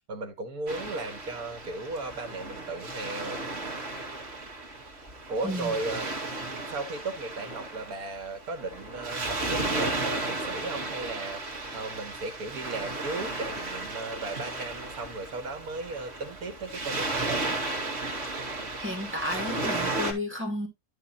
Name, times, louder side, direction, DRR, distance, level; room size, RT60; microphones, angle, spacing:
voice 1, 0.1-3.4 5.3-6.1 6.7-11.4 11.7-17.6, right 3 dB, 85° right, 2.0 m, -36 dB
Waves surf, 0.7-20.1, right 2 dB, 45° right, 2.4 m, -34 dB
voice 2, 5.4-5.8 18.8-20.7, left 1 dB, 10° right, 2.4 m, -32 dB
11.5 x 3.8 x 4.2 m
omnidirectional pair, 1.5 m